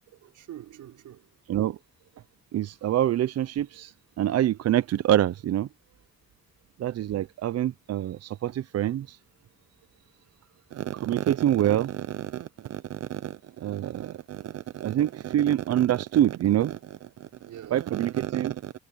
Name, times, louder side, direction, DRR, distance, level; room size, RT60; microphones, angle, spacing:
voice 1, 0.3-1.3 5.9-6.5 17.4-17.9, right 12 dB, 75° right, 4.8 m, -46 dB
voice 2, 2.5-5.7 6.8-9.2 10.7-17.3 17.7-18.7, right 12 dB, 55° right, 0.6 m, -26 dB
cardioid pair, 90°, 30 cm